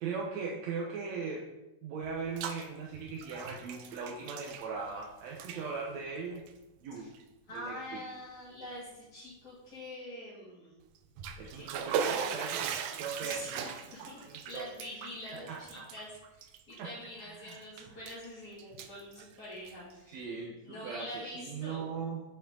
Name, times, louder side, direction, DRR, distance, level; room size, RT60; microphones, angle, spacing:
voice 1, 0.0-1.5 1.8-6.5 6.8-7.1 7.5-8.0 11.4-13.6 14.2-14.7 15.3-15.8 16.8-16.9 17.2-17.6 20.1-22.2, right 5 dB, 70° right, -2 dB, 1.9 m, -39 dB
Bathtub (filling or washing), 2.0-2.7 2.9-5.0 5.3-5.6 6.4-6.5 7.1-7.2 7.7-7.8 11.0-17.1 17.5-18.3 18.6-19.9, right 7 dB, 90° right, 2.3 m, -38 dB
voice 2, 7.5-10.7 11.5-12.4 13.2-20.2 20.6-21.9, left 1 dB, 30° left, -11 dB, 2.7 m, -45 dB
7.8 x 7.0 x 3.8 m, 0.97 s
omnidirectional pair, 3.8 m